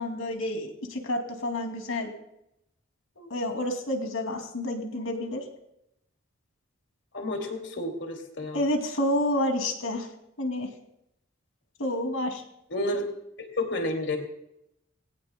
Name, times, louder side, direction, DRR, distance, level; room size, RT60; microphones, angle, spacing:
voice 1, 0.0-2.1 3.2-5.4 8.5-10.1 10.4-10.7 11.8-12.4, left 1 dB, 85° left, 4 dB, 2.7 m, -29 dB
voice 2, 7.1-8.6 12.7-13.0 13.4-14.2, left 1 dB, 60° left, 3 dB, 2.6 m, -30 dB
20.0 x 17.0 x 2.3 m, 0.82 s
head